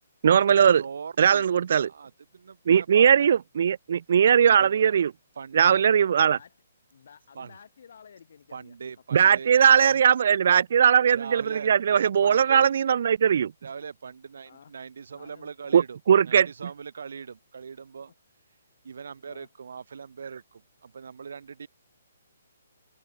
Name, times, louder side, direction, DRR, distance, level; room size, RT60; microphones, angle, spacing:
voice 1, 0.2-0.8 1.2-1.9 2.7-5.1 5.5-6.4 9.1-13.5 15.7-16.5, right 8 dB, 55° right, 0.4 m, -20 dB
voice 2, 0.7-1.4 1.8-3.3 4.5-5.1 5.4-5.6 7.3-7.6 8.5-10.0 11.1-11.7 12.0-12.7 13.6-16.0 16.2-18.1 18.8-21.7, right 6 dB, 70° right, 6.4 m, -41 dB
voice 3, 6.1-6.6 6.9-8.8 14.5-14.8 15.1-15.8 19.3-19.5, left 7 dB, 55° left, 5.7 m, -52 dB
hypercardioid pair, 165°, 0 cm